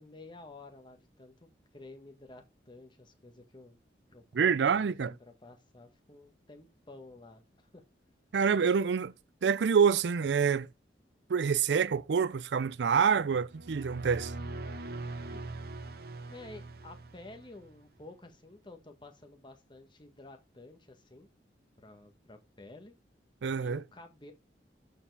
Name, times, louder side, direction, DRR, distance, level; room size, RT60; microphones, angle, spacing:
voice 1, 0.0-3.8 4.1-7.8 15.3-15.5 16.3-21.3 21.8-22.9 23.6-24.3, left 2 dB, 25° left, 1.6 m, -52 dB
voice 2, 4.3-5.1 8.3-9.1 9.4-10.7 11.3-14.3 23.4-23.8, right 6 dB, 75° right, 0.4 m, -26 dB
sound 1, 13.5-17.8, right 2 dB, 60° right, 0.9 m, -41 dB
12.5 x 4.8 x 3.4 m
head